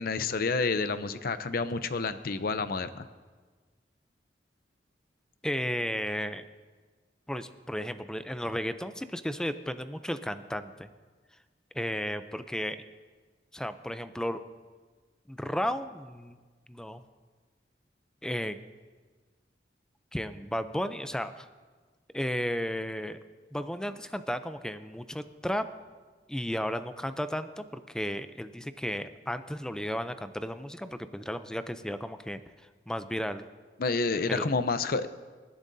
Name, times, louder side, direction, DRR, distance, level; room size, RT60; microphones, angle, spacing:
voice 1, 0.0-3.1 33.8-35.1, left 4 dB, 55° left, 11 dB, 0.6 m, -29 dB
voice 2, 5.4-6.4 7.3-10.9 11.7-12.8 13.5-14.4 15.3-16.4 16.7-17.0 18.2-18.6 20.1-21.5 22.1-23.2 23.5-25.6 26.3-32.4 32.9-33.4 34.3-34.5, equal, 5° left, 10 dB, 0.5 m, -34 dB
27.0 x 11.0 x 2.7 m, 1.4 s
head